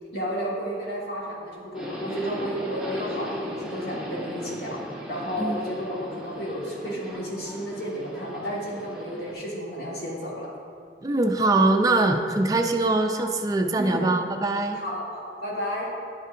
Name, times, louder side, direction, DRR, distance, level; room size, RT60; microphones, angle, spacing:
voice 1, 0.1-4.8 5.1-10.5 13.8-14.0 14.7-15.9, equal, 65° left, -5 dB, 1.7 m, -32 dB
Subway metro underground, 1.7-9.3, equal, 5° right, 0.7 m, -37 dB
voice 2, 11.0-14.8, right 2 dB, 20° right, 4 dB, 0.3 m, -22 dB
9.5 x 5.4 x 2.5 m, 2.3 s
head